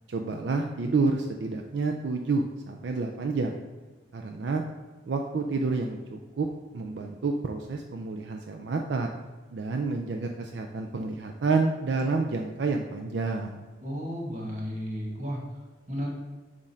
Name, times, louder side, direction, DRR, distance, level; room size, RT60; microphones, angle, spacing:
voice 1, 0.1-3.6 4.1-4.6 5.1-9.1 9.5-13.6, right 3 dB, 70° right, 3 dB, 0.4 m, -29 dB
voice 2, 13.8-16.1, equal, 40° right, -1 dB, 1.3 m, -34 dB
7.1 x 2.6 x 5.5 m, 1.3 s
head